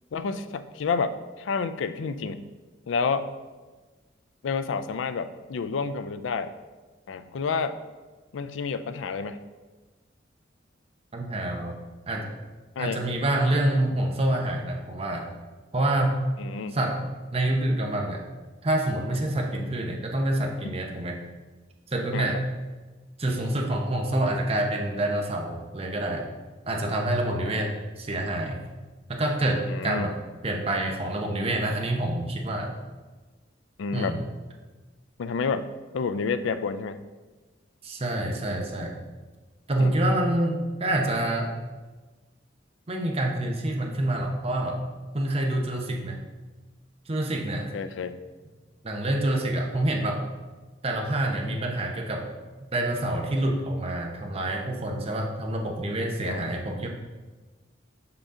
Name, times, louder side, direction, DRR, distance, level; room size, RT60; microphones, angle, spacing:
voice 1, 0.1-2.5 2.9-3.3 4.4-6.5 7.1-7.8 8.3-9.4 12.8-13.0 16.4-16.8 22.1-22.3 27.4-27.5 29.7-30.1 33.8-34.1 35.2-35.7 35.9-37.0 39.8-39.9 47.7-48.2 56.3-56.5, left 5 dB, 80° left, 12 dB, 0.4 m, -29 dB
voice 2, 11.1-11.8 12.1-12.3 12.8-15.3 15.7-16.2 16.7-18.2 18.6-21.2 21.9-22.4 23.2-26.3 26.7-28.6 29.1-30.1 30.4-32.7 33.9-34.2 37.8-39.0 39.7-41.6 42.9-44.9 45.1-46.2 47.1-47.7 48.8-50.2 50.8-52.3 52.6-56.9, right 1 dB, 30° right, 1 dB, 0.8 m, -27 dB
5.8 x 5.6 x 3.7 m, 1.3 s
head